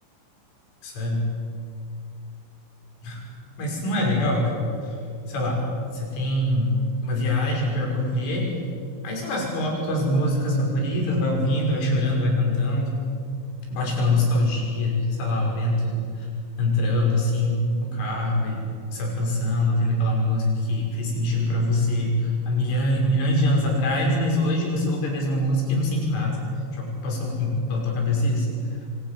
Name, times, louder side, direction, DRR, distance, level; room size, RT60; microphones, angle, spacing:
voice 1, 0.8-1.3 3.0-3.2 3.6-5.0 5.3-5.7 5.9-6.8 7.0-8.5 9.0-13.0 13.7-16.0 16.6-18.6 18.9-26.4 26.7-28.5, left 1 dB, 85° left, -1 dB, 8.6 m, -24 dB
28.5 x 25.0 x 7.7 m, 2.4 s
omnidirectional pair, 5.5 m